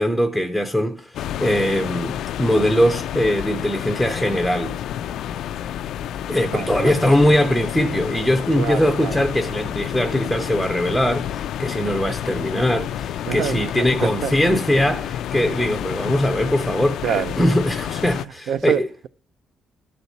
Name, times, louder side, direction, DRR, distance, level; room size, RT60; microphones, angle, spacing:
voice 1, 0.0-4.8 6.3-18.9, equal, ahead, 0.5 m, -21 dB
sound 1, 1.1-18.2, left 10 dB, 65° left, 0.4 m, -29 dB
voice 2, 6.5-6.9 8.5-9.2 13.3-14.3 17.0-17.3 18.2-19.1, right 9 dB, 70° right, 0.5 m, -27 dB
12.0 x 4.2 x 8.0 m
cardioid pair, 170°, 0 cm